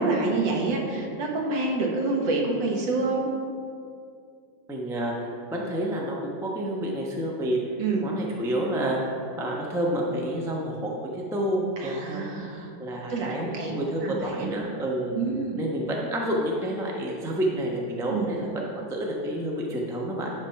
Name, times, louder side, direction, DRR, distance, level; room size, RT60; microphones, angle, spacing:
voice 1, 0.0-3.3 7.8-8.1 11.8-12.7 13.1-13.7 14.0-14.5 15.1-15.6 18.1-18.3, right 3 dB, 70° right, 0 dB, 1.9 m, -27 dB
voice 2, 4.7-7.6 8.0-15.2 15.6-20.3, right 1 dB, 5° right, -2 dB, 0.3 m, -29 dB
11.0 x 3.7 x 5.6 m, 2.3 s
omnidirectional pair, 2.1 m